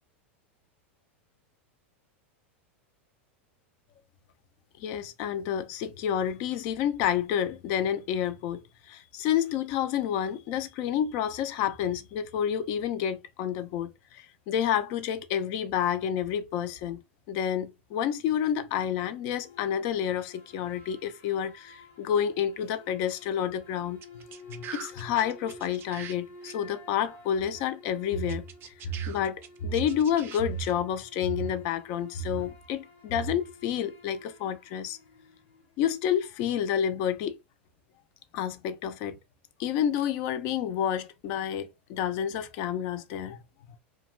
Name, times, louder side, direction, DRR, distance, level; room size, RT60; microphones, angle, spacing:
voice 1, 4.8-17.0 17.3-24.0 24.5-35.0 35.8-37.3 38.3-39.2 39.6-43.4, left 9 dB, 55° left, 0.4 m, -29 dB
sound 1, 19.2-35.8, left 2 dB, 80° left, 1.2 m, -52 dB
sound 2, 24.0-26.2 26.4-26.5 28.3-30.7, right 8 dB, 35° right, 0.4 m, -43 dB
2.3 x 2.2 x 3.0 m
hypercardioid pair, 110°, 7 cm